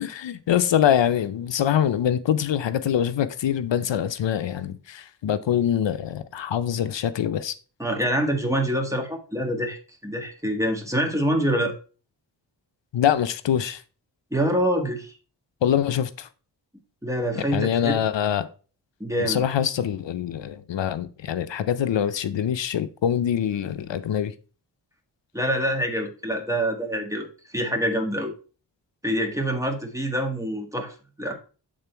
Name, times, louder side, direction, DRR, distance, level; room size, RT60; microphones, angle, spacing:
voice 1, 0.0-7.5 12.9-13.8 15.6-16.3 17.4-18.5 19.2-24.3, left 9 dB, 80° left, 0.6 m, -24 dB
voice 2, 7.8-11.7 14.3-15.1 17.0-18.0 19.0-19.4 25.3-28.3 29.0-31.3, equal, 5° right, 1.5 m, -26 dB
8.7 x 3.8 x 4.4 m
wide cardioid pair, 80°, 43 cm